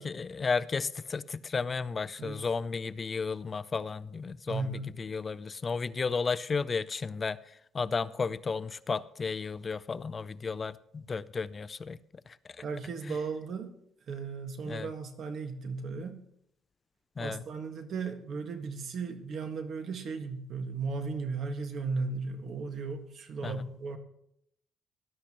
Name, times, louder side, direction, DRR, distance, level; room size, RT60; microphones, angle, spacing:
voice 1, 0.0-4.7 5.0-7.4 7.7-12.0 12.3-12.4 13.1-13.2 14.7-14.9 17.2-17.4 23.4-23.5, left 5 dB, 30° left, 0.4 m, -33 dB
voice 2, 4.5-4.9 12.6-13.7 14.1-16.2 17.2-24.0, right 4 dB, 55° right, 1.6 m, -36 dB
19.0 x 11.5 x 3.0 m
cardioid pair, 130°, 0 cm